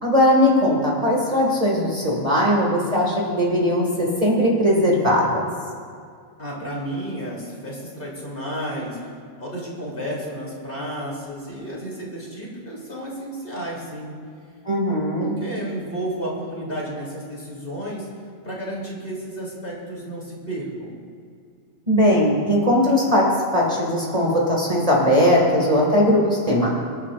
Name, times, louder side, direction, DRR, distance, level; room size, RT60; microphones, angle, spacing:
voice 1, 0.0-5.5 14.6-15.3 21.9-26.7, equal, 25° right, -3 dB, 2.1 m, -19 dB
voice 2, 6.4-9.0 9.4-14.1 15.2-18.1 18.4-20.9, right 1 dB, 40° left, -4 dB, 3.4 m, -32 dB
25.0 x 10.5 x 2.5 m, 2.3 s
omnidirectional pair, 1.4 m